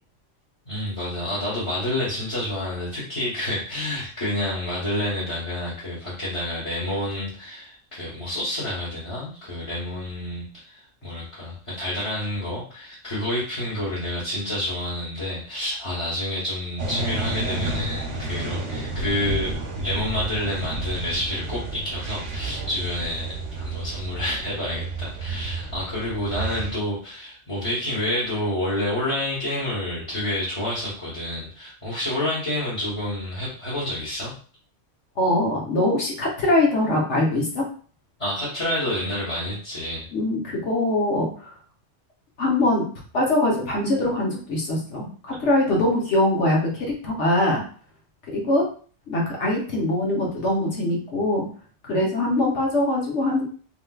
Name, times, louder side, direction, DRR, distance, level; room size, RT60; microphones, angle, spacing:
voice 1, 0.6-34.3 38.2-40.1, left 1 dB, 30° left, -9 dB, 1.0 m, -29 dB
sound 1, 16.8-26.7, right 2 dB, 75° right, 1.0 m, -31 dB
voice 2, 35.2-37.6 40.1-41.5 42.4-42.8 43.1-47.6 48.3-48.7 49.1-51.4 51.8-53.4, left 1 dB, 70° left, -2 dB, 1.3 m, -22 dB
3.3 x 3.0 x 2.3 m, 0.42 s
omnidirectional pair, 1.2 m